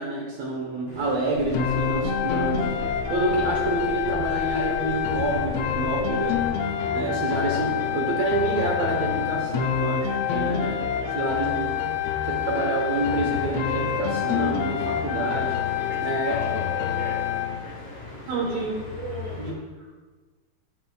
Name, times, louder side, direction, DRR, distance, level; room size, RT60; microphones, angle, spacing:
voice 1, 0.0-2.8 3.1-6.4 6.9-10.8 11.1-15.6 16.0-16.3 18.3-18.8 19.4-19.5, right 2 dB, 70° right, 0 dB, 2.1 m, -28 dB
sound 1, 0.9-19.5, left 3 dB, 40° left, 3.1 m, -43 dB
sound 2, 1.3-6.5, right 3 dB, 90° right, 2.1 m, -39 dB
sound 3, 1.5-17.6, left 9 dB, 90° left, 1.4 m, -27 dB
voice 2, 10.9-11.2 15.8-17.3 17.6-18.4 18.9-19.5, right 2 dB, 45° right, -3 dB, 1.8 m, -39 dB
11.5 x 7.7 x 2.3 m, 1.4 s
omnidirectional pair, 3.4 m